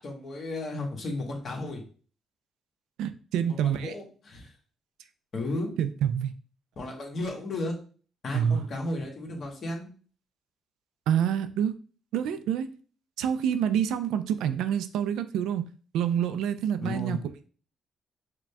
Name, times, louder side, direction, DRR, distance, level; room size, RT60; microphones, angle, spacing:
voice 1, 0.0-1.8 3.6-4.5 5.3-5.7 6.8-7.7 8.2-9.9 16.8-17.2, left 2 dB, 50° left, 1.4 m, -34 dB
voice 2, 3.0-4.0 5.8-6.3 8.3-8.7 11.1-11.8 12.1-12.7 13.2-15.6 15.9-17.2, right 9 dB, 85° right, 0.4 m, -27 dB
4.9 x 2.3 x 3.4 m
cardioid pair, 90°, 0 cm